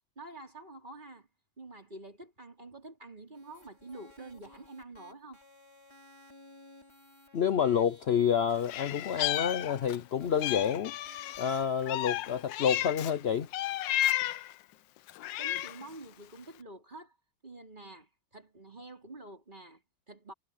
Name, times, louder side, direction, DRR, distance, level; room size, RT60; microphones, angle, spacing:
voice 1, 0.2-1.3 1.6-5.4 15.4-17.2 17.4-20.3, right 2 dB, 25° right, 4.2 m, -48 dB
sound 1, 3.3-12.4, left 1 dB, 15° left, 5.0 m, -57 dB
voice 2, 7.3-10.9 11.4-13.5, left 8 dB, 75° left, 0.5 m, -28 dB
Meow, 8.6-10.0 10.4-13.1 13.5-14.5 15.1-15.9, left 14 dB, 90° left, 1.3 m, -33 dB
omnidirectional pair, 2.0 m